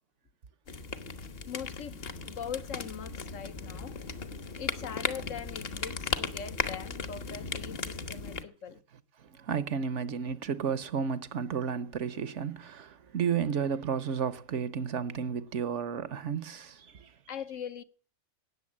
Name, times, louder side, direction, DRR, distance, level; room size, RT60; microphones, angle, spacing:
sound 1, 0.7-8.4, left 5 dB, 50° left, 1.3 m, -37 dB
voice 1, 1.5-4.0 4.6-8.8 17.3-17.8, left 8 dB, 70° left, 1.2 m, -41 dB
voice 2, 9.2-17.1, right 7 dB, 65° right, 1.1 m, -32 dB
18.0 x 7.0 x 8.5 m
omnidirectional pair, 1.4 m